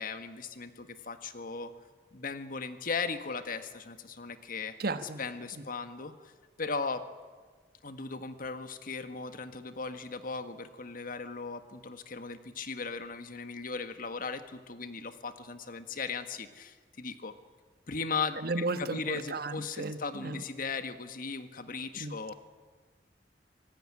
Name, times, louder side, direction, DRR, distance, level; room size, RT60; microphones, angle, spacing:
voice 1, 0.0-1.7 2.1-4.8 5.2-6.3 6.6-7.1 7.8-17.4 17.9-22.3, left 4 dB, 55° left, 9 dB, 1.6 m, -37 dB
voice 2, 4.8-5.2 18.4-20.4 22.0-22.1, right 3 dB, 60° right, 10 dB, 1.4 m, -34 dB
25.0 x 18.5 x 9.8 m, 1.5 s
head